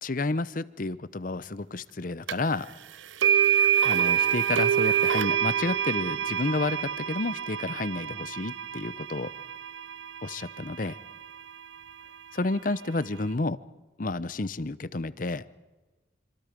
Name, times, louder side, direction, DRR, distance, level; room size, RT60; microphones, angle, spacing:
voice 1, 0.0-2.7 3.8-9.3 10.2-11.0 12.3-13.6 14.0-15.4, left 2 dB, 45° left, 16 dB, 0.7 m, -30 dB
sound 1, 2.3-2.4 3.2-11.2, right 9 dB, 85° right, 0.6 m, -26 dB
26.5 x 25.5 x 5.2 m, 1.2 s
head